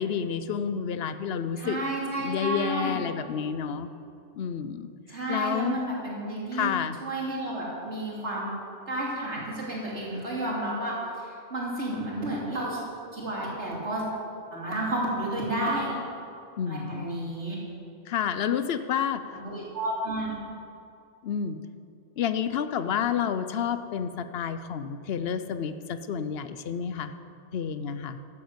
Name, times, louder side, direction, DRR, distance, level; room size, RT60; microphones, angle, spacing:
voice 1, 0.0-1.8 2.2-3.9 4.4-4.9 5.3-5.8 6.5-7.0 16.6-17.1 18.1-19.2 21.2-21.6 22.2-27.1 27.5-28.2, left 7 dB, 60° left, 11 dB, 0.9 m, -29 dB
voice 2, 1.6-3.0 5.1-6.7 7.0-8.5 8.9-10.9 11.5-12.8 13.1-14.0 14.5-15.9 16.7-17.6 19.3-20.3, right 1 dB, 65° right, -5 dB, 3.4 m, -31 dB
12.0 x 8.6 x 8.0 m, 2.5 s
omnidirectional pair, 1.2 m